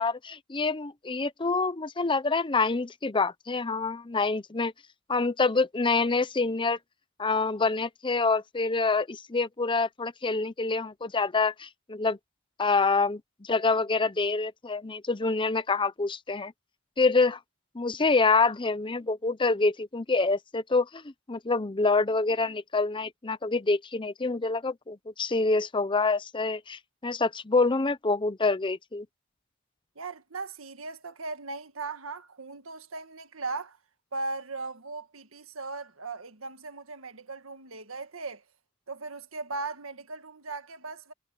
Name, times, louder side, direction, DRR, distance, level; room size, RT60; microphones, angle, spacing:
voice 1, 0.0-4.7 5.1-6.8 7.2-12.2 12.6-16.5 17.0-17.4 17.7-21.0 21.3-29.1, left 3 dB, 25° left, 0.7 m, -26 dB
voice 2, 29.9-33.8 34.1-38.4 38.9-41.1, right 3 dB, 75° right, 1.7 m, -38 dB
head